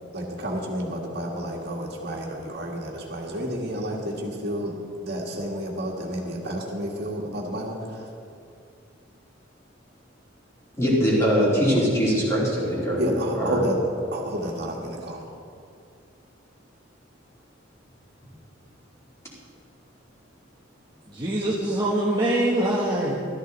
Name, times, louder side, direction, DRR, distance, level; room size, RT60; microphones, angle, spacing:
voice 1, 0.1-4.7 5.0-7.8 13.0-13.7 14.1-15.2, equal, 55° right, -1 dB, 1.8 m, -30 dB
voice 2, 10.8-13.0 13.3-13.6, equal, 15° left, -6 dB, 3.3 m, -22 dB
voice 3, 21.1-23.2, right 1 dB, 20° right, -5 dB, 1.3 m, -24 dB
14.0 x 13.0 x 4.1 m, 2.4 s
head